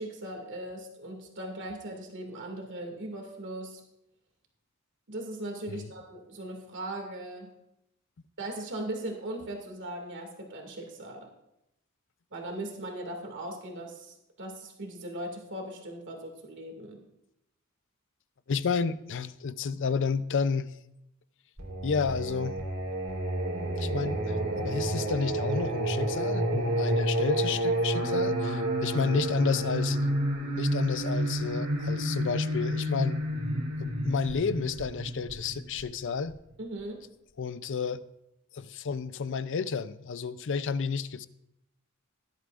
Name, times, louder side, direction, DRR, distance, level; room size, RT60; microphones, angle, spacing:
voice 1, 0.0-3.8 5.1-7.5 8.4-11.3 12.3-17.0 36.6-37.0, right 1 dB, 60° right, 2 dB, 2.3 m, -39 dB
voice 2, 18.5-20.7 21.8-22.6 23.8-30.0 30.6-33.2 33.8-36.4 37.4-38.0 38.5-41.3, left 5 dB, 60° left, 14 dB, 0.5 m, -31 dB
Singing, 21.6-36.3, right 1 dB, 75° right, 3.5 m, -30 dB
17.5 x 11.5 x 2.5 m, 0.84 s
head